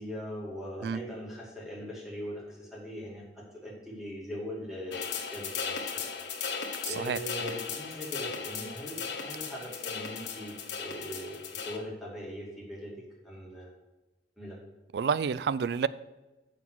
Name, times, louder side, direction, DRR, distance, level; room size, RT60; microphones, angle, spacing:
voice 1, 0.0-6.1 6.8-13.7 14.4-14.6, equal, ahead, 2.3 m, -41 dB
sound 1, 4.9-11.8, left 6 dB, 85° left, 1.2 m, -37 dB
voice 2, 6.8-7.2 14.9-15.9, right 6 dB, 65° right, 0.3 m, -29 dB
7.5 x 5.9 x 6.1 m
head